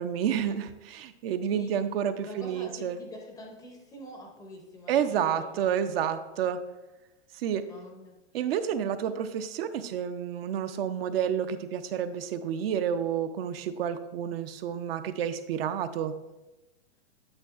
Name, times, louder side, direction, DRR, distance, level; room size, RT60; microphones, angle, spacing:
voice 1, 0.0-3.0 4.9-6.6 7.3-7.7 8.3-16.1, right 8 dB, 55° right, 11 dB, 0.5 m, -30 dB
voice 2, 2.2-5.8 7.7-8.2 9.1-9.2, left 1 dB, 10° left, 1 dB, 0.5 m, -45 dB
8.8 x 6.6 x 2.4 m, 1.0 s
hypercardioid pair, 150°, 35 cm